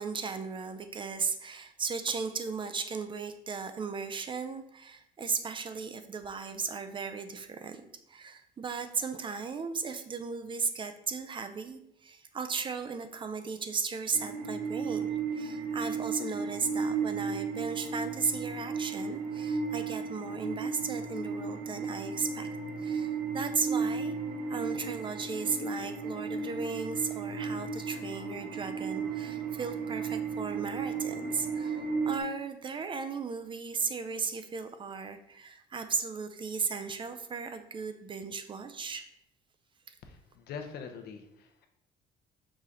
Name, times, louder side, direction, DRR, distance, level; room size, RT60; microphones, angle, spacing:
voice 1, 0.0-22.5 22.8-24.1 24.5-39.0 39.9-40.0, right 5 dB, 30° right, 9 dB, 0.4 m, -36 dB
sound 1, 14.1-32.2, right 5 dB, 60° right, 0.7 m, -34 dB
voice 2, 40.0-41.7, left 6 dB, 70° left, 5 dB, 0.7 m, -44 dB
4.9 x 2.8 x 3.7 m, 0.79 s
cardioid pair, 110°, 17 cm